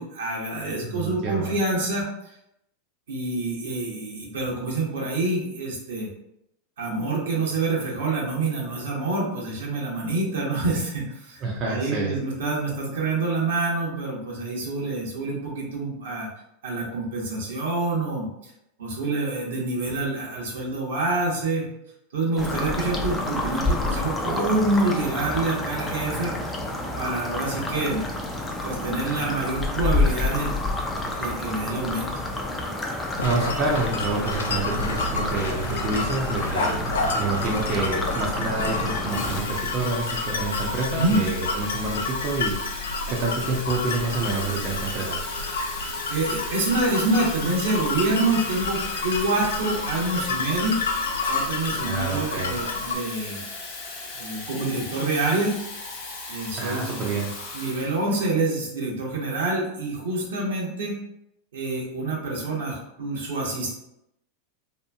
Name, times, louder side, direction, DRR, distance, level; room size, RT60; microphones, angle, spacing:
voice 1, 0.0-2.1 3.1-6.1 6.8-16.3 16.6-18.3 18.8-21.6 22.1-26.3 27.0-28.0 28.6-30.5 31.2-32.1 40.9-41.2 46.1-50.8 51.3-53.4 54.1-55.6 56.3-57.1 57.5-61.0 61.5-63.7, right 2 dB, 80° right, -4 dB, 1.0 m, -26 dB
voice 2, 0.8-1.5 11.4-12.1 33.2-36.9 37.1-45.2 51.8-52.6 56.6-57.3, right 3 dB, 40° right, -3 dB, 0.6 m, -28 dB
sound 1, 22.4-39.4, left 2 dB, 15° left, 0.5 m, -29 dB
sound 2, 33.2-53.0, left 3 dB, 85° left, 0.3 m, -30 dB
Water tap faucet / Fill (with liquid), 38.6-58.3, left 3 dB, 65° left, 0.9 m, -37 dB
2.9 x 2.4 x 2.3 m, 0.81 s
hypercardioid pair, 100°, 0 cm